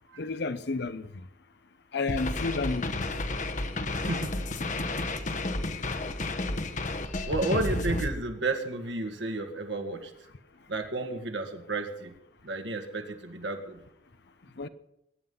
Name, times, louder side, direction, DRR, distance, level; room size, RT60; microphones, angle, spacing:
voice 1, 0.2-1.1 1.9-3.1 14.6-14.7, left 3 dB, 60° left, 0.8 m, -31 dB
sound 1, 2.1-8.1, left 2 dB, 40° left, 1.1 m, -31 dB
voice 2, 4.0-4.4 7.3-10.1 10.7-12.1 12.4-13.8, right 2 dB, 70° right, 2.0 m, -32 dB
22.0 x 9.5 x 5.6 m
head